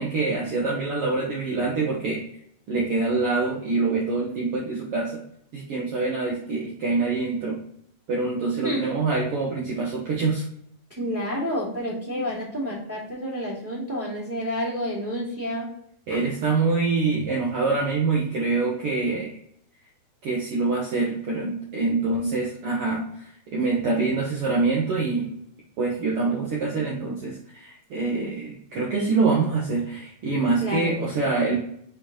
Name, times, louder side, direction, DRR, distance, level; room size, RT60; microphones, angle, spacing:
voice 1, 0.0-2.3 2.7-5.2 5.5-7.6 8.1-10.4 16.1-19.3 20.2-25.3 25.8-31.6, right 3 dB, 75° right, -3 dB, 1.3 m, -25 dB
voice 2, 11.0-15.7 30.6-31.0, equal, 5° right, -4 dB, 1.5 m, -29 dB
7.3 x 4.5 x 2.9 m, 0.69 s
omnidirectional pair, 4.3 m